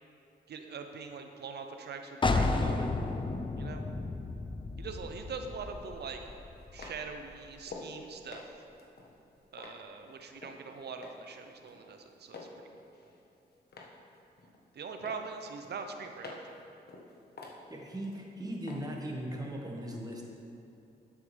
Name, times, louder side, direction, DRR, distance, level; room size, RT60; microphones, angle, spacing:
voice 1, 0.5-2.9 3.6-3.9 4.8-6.2 6.7-8.5 9.5-12.5 12.7-12.9 14.7-16.6, right 5 dB, 65° right, 5 dB, 0.9 m, -42 dB
sound 1, 2.2-7.8, left 3 dB, 25° left, 0.7 m, -33 dB
sound 2, 5.2-5.3 6.2-8.0 8.3-10.6 11.0-11.4 11.7-12.6 12.9-14.0 14.4-14.8 15.0-16.6 16.9-18.2 18.7-18.8, left 3 dB, 60° left, 1.4 m, -48 dB
voice 2, 17.7-20.3, right 1 dB, 20° right, -1 dB, 1.9 m, -39 dB
11.0 x 8.2 x 3.5 m, 2.7 s
supercardioid pair, 60°, 18 cm